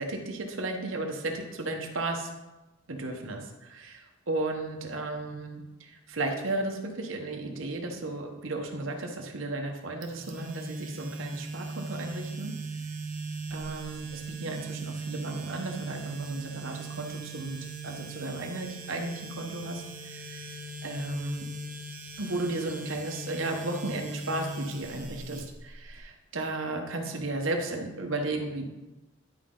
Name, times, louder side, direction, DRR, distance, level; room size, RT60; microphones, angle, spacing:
voice 1, 0.0-2.3 2.9-12.5 13.5-20.6 20.8-21.5 22.2-28.7, right 2 dB, 80° right, 3 dB, 1.1 m, -34 dB
sound 1, 10.0-26.0, right 2 dB, 40° right, 0.9 m, -39 dB
10.5 x 5.0 x 3.8 m, 1.0 s
head